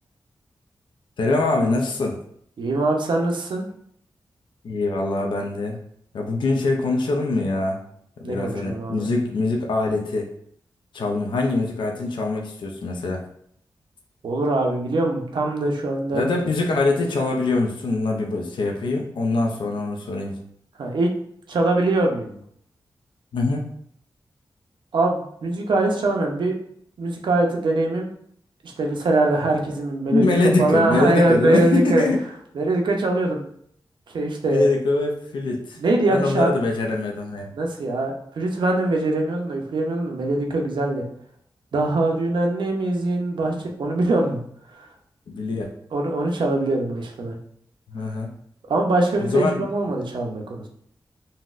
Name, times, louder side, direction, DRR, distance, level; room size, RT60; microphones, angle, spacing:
voice 1, 1.2-2.2 4.6-5.8 6.1-7.8 8.2-10.3 10.9-13.3 16.1-20.4 23.3-23.6 30.1-32.2 34.5-35.8 36.1-37.5 45.3-45.7 47.9-48.3 49.2-49.6, left 2 dB, 75° left, 1 dB, 0.4 m, -23 dB
voice 2, 2.6-3.6 8.2-9.1 14.2-16.2 20.8-21.1 21.5-22.4 24.9-26.6 27.0-28.1 28.6-30.2 30.6-32.0 32.5-33.4 34.1-34.7 35.8-36.5 37.5-41.0 41.7-44.4 44.8-44.9 45.9-47.4 48.7-50.7, right 2 dB, 75° right, 1 dB, 0.5 m, -22 dB
3.9 x 2.1 x 2.4 m, 0.67 s
wide cardioid pair, 105°, 8 cm